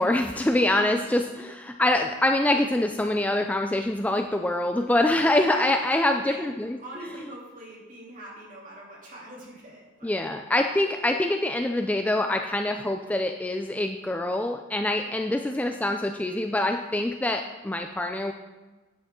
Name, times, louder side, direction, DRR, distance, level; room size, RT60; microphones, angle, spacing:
voice 1, 0.0-6.8 10.0-18.3, left 1 dB, 10° left, 5 dB, 0.3 m, -25 dB
voice 2, 0.8-1.1 5.4-6.5 6.8-10.3 15.0-15.3, right 1 dB, 40° right, -4 dB, 3.2 m, -42 dB
10.5 x 8.6 x 3.8 m, 1.2 s
head